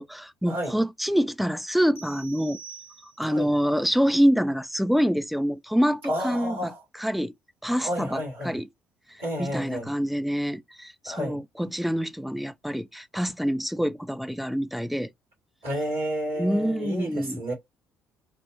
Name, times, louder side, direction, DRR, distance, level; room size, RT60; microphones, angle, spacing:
voice 1, 0.0-2.6 3.2-6.7 7.0-7.3 7.6-8.7 9.1-15.1 16.4-17.4, equal, ahead, 0.4 m, -26 dB
sound 1, 2.0-3.5, right 6 dB, 90° left, 0.4 m, -46 dB
voice 2, 6.0-6.8 7.8-8.6 9.2-9.9 11.1-11.4 15.6-17.5, equal, 75° right, 1.7 m, -31 dB
3.5 x 2.1 x 2.5 m
figure-of-eight pair, 50°, 7 cm